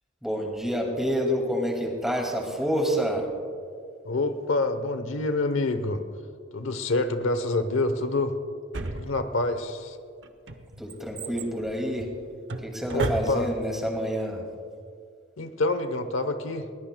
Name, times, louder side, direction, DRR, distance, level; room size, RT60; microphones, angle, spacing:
voice 1, 0.2-3.3 10.8-12.1 12.6-14.4, equal, ahead, 0 dB, 2.2 m, -28 dB
voice 2, 4.0-6.0 6.5-8.4 8.9-10.0 12.9-13.5 15.4-16.7, left 2 dB, 85° left, 9 dB, 0.9 m, -27 dB
Drawer open or close, 8.7-9.6 10.2-13.7 14.0-14.1, right 2 dB, 60° right, 0.9 m, -33 dB
21.0 x 19.5 x 2.3 m, 2.2 s
head